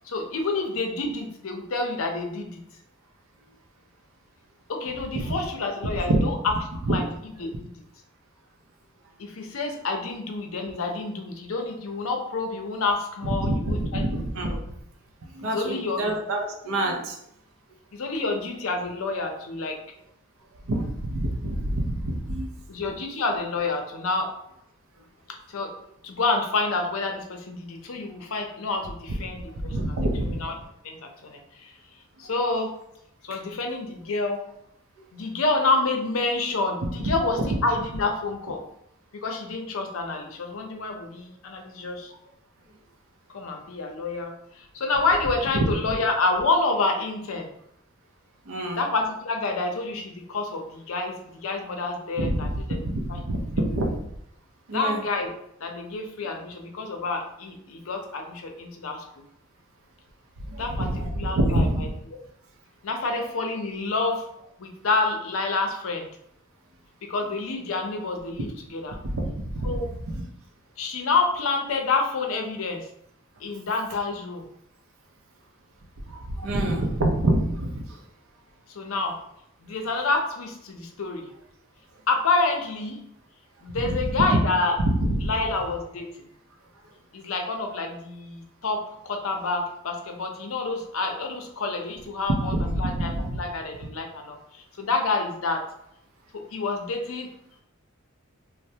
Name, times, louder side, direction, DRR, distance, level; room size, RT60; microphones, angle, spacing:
voice 1, 0.1-2.6 4.7-6.5 6.9-7.1 7.4-7.7 9.2-14.0 14.5-14.6 15.4-16.1 17.9-19.8 22.7-24.3 25.5-25.7 26.0-30.0 30.3-30.5 30.8-31.7 32.2-32.7 33.2-34.4 35.1-38.6 39.1-42.1 43.3-47.5 48.8-51.1 51.4-52.8 53.1-53.2 54.7-55.3 55.6-59.0 60.6-60.9 61.1-61.9 62.8-64.3 64.6-66.1 67.1-69.0 69.6-69.9 70.8-72.9 73.4-74.5 78.8-79.2 79.6-81.3 82.1-83.0 83.6-84.8 85.2-86.1 87.1-92.5 92.8-94.4 94.8-95.6 96.3-97.3, left 3 dB, 75° left, 3 dB, 0.5 m, -28 dB
voice 2, 13.4-14.5 15.3-17.2 20.7-22.5 29.6-30.4 35.0-35.1 37.0-37.1 45.5-45.6 48.5-48.8 52.2-52.5 52.8-53.9 54.7-55.0 60.5-61.8 69.0-69.8 70.1-70.2 76.1-77.7 83.7-84.0 84.3-84.4 84.8-85.3 92.4-93.4, right 1 dB, 75° right, 2 dB, 0.5 m, -26 dB
3.1 x 2.1 x 2.7 m, 0.75 s
head